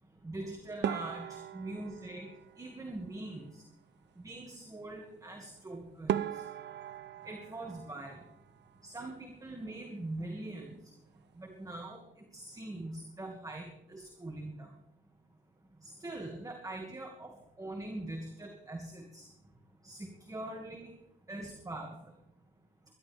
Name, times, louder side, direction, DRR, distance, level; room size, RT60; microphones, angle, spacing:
voice 1, 0.2-3.6 4.2-6.4 7.2-8.2 8.8-10.8 11.4-14.7 15.8-19.3 19.8-20.9 21.3-22.0, right 2 dB, 15° right, 2 dB, 2.2 m, -43 dB
sound 1, 0.8-3.3 5.5-5.6 6.1-8.8 9.1-9.9 10.2-10.4 10.7-10.8 11.4-11.7, right 10 dB, 60° right, 0.6 m, -39 dB
22.0 x 12.0 x 3.5 m, 0.79 s
cardioid pair, 90°, 20 cm